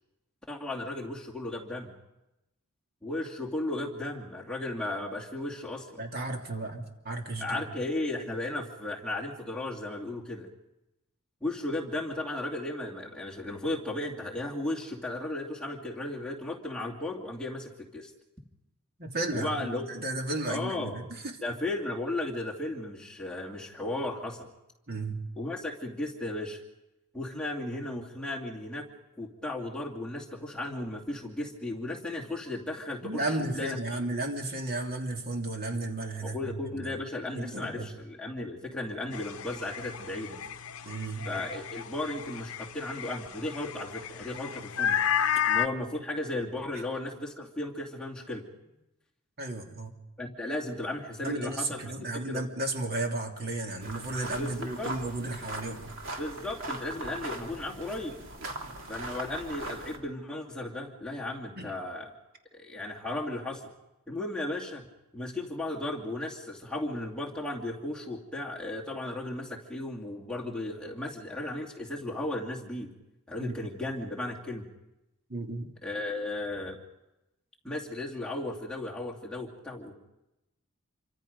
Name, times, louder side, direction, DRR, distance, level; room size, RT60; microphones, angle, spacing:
voice 1, 0.5-1.9 3.0-6.0 7.4-10.5 11.4-18.1 19.3-19.9 20.5-21.0 21.4-24.5 25.4-26.6 27.1-28.9 29.2-34.0 36.2-40.4 41.2-45.0 45.5-48.4 50.2-51.9 52.2-52.4 54.4-54.9 56.2-58.1 58.9-62.1 62.5-63.7 64.1-64.8 65.1-72.9 73.3-74.7 75.8-76.8 77.6-79.9, left 2 dB, 5° left, -3 dB, 2.4 m, -35 dB
voice 2, 6.0-7.6 19.0-21.4 24.9-25.2 33.0-37.0 37.3-37.9 40.8-41.2 49.4-49.9 51.2-55.9 61.6-61.7 73.4-73.6 75.3-75.7, right 2 dB, 45° right, 2 dB, 2.7 m, -34 dB
sound 1, 39.1-45.7, left 9 dB, 65° left, 0.8 m, -32 dB
sound 2, 53.8-60.0, right 2 dB, 60° right, 3.4 m, -40 dB
27.5 x 25.0 x 5.3 m, 0.94 s
head